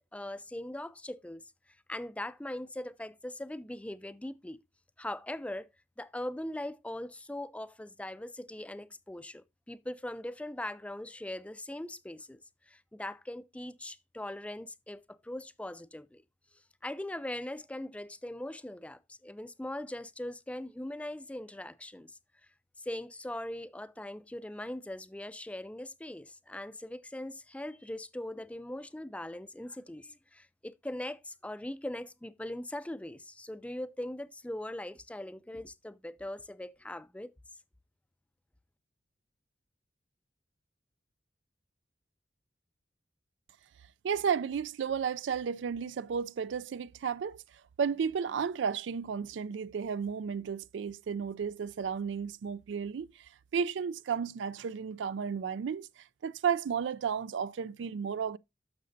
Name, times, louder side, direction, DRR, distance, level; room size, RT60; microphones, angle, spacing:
voice 1, 0.0-1.4 1.9-4.6 5.0-5.7 6.0-12.4 12.7-16.2 16.8-22.2 22.8-37.3, left 1 dB, 5° left, 0.4 m, -40 dB
voice 2, 44.0-47.4 47.8-53.1 53.5-58.4, right 7 dB, 70° right, 0.4 m, -33 dB
11.5 x 6.7 x 2.6 m
head